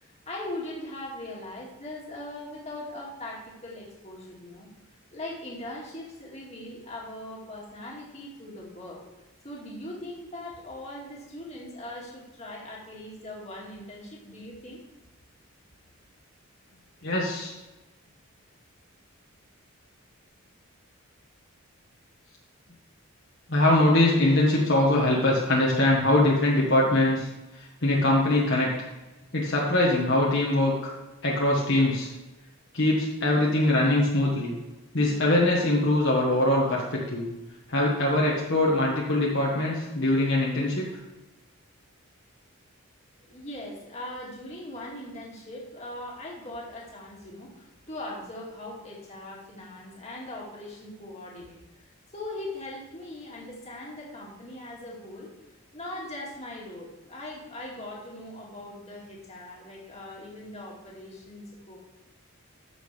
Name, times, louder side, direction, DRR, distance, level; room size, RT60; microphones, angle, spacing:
voice 1, 0.0-4.7 5.1-9.0 9.4-14.8 43.3-51.6 52.1-55.3 55.7-61.8, left 1 dB, 30° left, -4 dB, 2.2 m, -40 dB
voice 2, 17.0-17.5 23.5-27.3 27.6-28.7 29.3-30.9 31.2-32.1 32.7-34.6 34.9-37.3 37.7-40.9, left 1 dB, 55° left, -4 dB, 1.5 m, -22 dB
14.0 x 6.2 x 3.3 m, 1.1 s
head